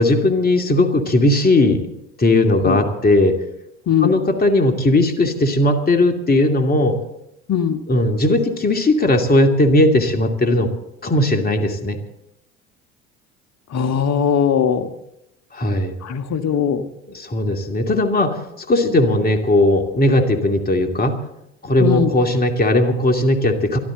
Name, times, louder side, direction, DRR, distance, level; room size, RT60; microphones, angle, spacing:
voice 1, 0.0-1.9 2.2-3.4 4.0-7.0 7.9-10.7 11.0-12.0 15.5-16.0 17.1-21.2 21.6-23.8, left 1 dB, 25° left, 4 dB, 2.6 m, -17 dB
voice 2, 13.7-14.9 16.0-16.8 21.8-22.1, left 8 dB, 45° left, 9 dB, 1.6 m, -19 dB
24.0 x 13.0 x 4.0 m, 0.82 s
hypercardioid pair, 65°, 36 cm